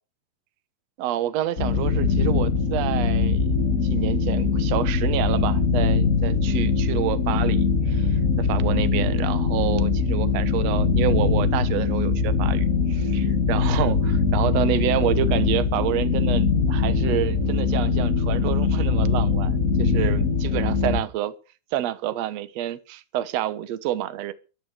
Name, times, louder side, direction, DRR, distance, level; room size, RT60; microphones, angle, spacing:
voice 1, 1.0-21.3 21.7-24.3, right 12 dB, 65° right, 1.7 m, -28 dB
sound 1, 1.6-21.0, left 5 dB, 45° left, 1.0 m, -22 dB
14.0 x 11.5 x 6.7 m
omnidirectional pair, 4.4 m